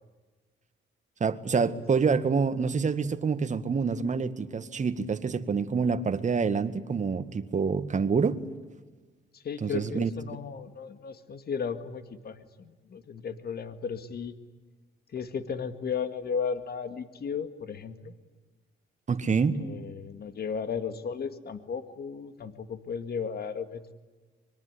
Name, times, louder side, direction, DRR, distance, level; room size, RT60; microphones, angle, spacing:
voice 1, 1.2-8.4 9.6-10.1 19.1-19.6, right 5 dB, 40° right, 11 dB, 1.8 m, -27 dB
voice 2, 9.3-14.3 15.1-18.1 19.6-23.9, left 6 dB, 50° left, 10 dB, 2.1 m, -35 dB
25.0 x 22.5 x 9.8 m, 1.3 s
cardioid pair, 90°, 20 cm